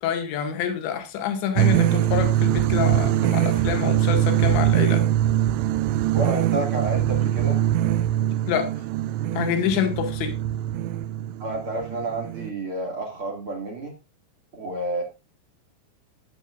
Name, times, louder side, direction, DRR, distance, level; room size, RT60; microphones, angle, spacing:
voice 1, 0.0-5.1 8.5-8.7 9.3-10.4, left 9 dB, 65° left, 4.0 m, -27 dB
sound 1, 1.6-12.5, right 12 dB, 80° right, 3.0 m, -22 dB
voice 2, 6.1-7.6 11.4-13.9 14.5-15.0, right 2 dB, 45° right, 1.9 m, -30 dB
15.0 x 9.7 x 2.5 m
omnidirectional pair, 5.8 m